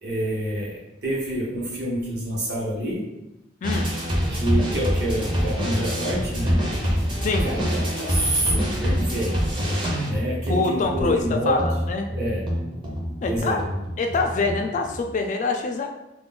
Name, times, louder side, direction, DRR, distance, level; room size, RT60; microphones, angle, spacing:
voice 1, 0.0-3.1 4.3-6.6 7.0-7.1 7.4-9.4 10.0-11.7 12.1-12.5 13.3-13.6, right 1 dB, 65° right, -5 dB, 1.0 m, -27 dB
voice 2, 3.6-3.9 7.2-7.5 10.5-12.1 13.2-13.6 14.0-15.9, left 3 dB, 45° left, 4 dB, 0.3 m, -25 dB
sound 1, 3.6-15.0, equal, 30° right, 0.6 m, -26 dB
2.4 x 2.1 x 3.7 m, 0.94 s
head